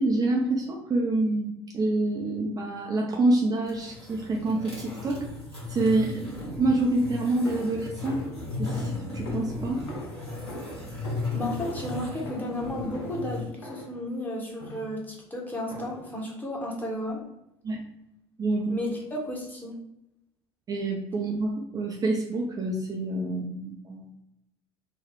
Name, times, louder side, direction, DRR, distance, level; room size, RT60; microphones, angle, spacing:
voice 1, 0.0-5.3 5.7-8.2 8.6-9.9 17.6-17.8 18.4-18.8 20.7-24.1, right 2 dB, 25° right, -1 dB, 0.6 m, -27 dB
sound 1, 3.5-13.4, left 3 dB, 90° right, 1.3 m, -36 dB
sound 2, 7.4-14.1 14.6-15.1 15.7-16.2, left 1 dB, 75° left, 0.7 m, -43 dB
voice 2, 11.3-17.2 18.7-19.8, left 1 dB, 15° left, -2 dB, 1.1 m, -33 dB
4.0 x 2.3 x 3.1 m, 0.86 s
figure-of-eight pair, 60°, 13 cm